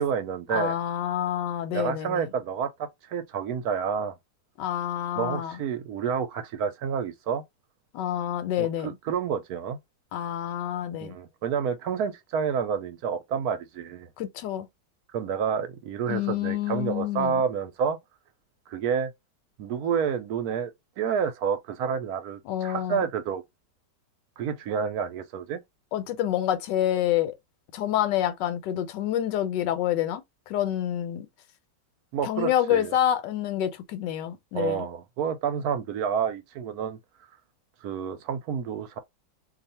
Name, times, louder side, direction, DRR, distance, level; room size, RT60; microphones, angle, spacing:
voice 1, 0.0-0.8 1.7-4.2 5.1-7.4 8.6-9.8 11.0-14.1 15.1-18.0 18.7-19.1 19.6-20.7 21.0-23.4 24.4-25.6 32.1-32.9 34.5-37.0 37.8-39.0, right 7 dB, 70° right, 1.1 m, -29 dB
voice 2, 0.5-2.2 4.6-5.5 7.9-8.9 10.1-11.2 14.2-14.7 16.1-17.4 22.5-23.0 25.9-27.3 27.7-31.3 32.2-34.8, left 11 dB, 85° left, 1.3 m, -27 dB
2.7 x 2.3 x 4.1 m
omnidirectional pair, 1.9 m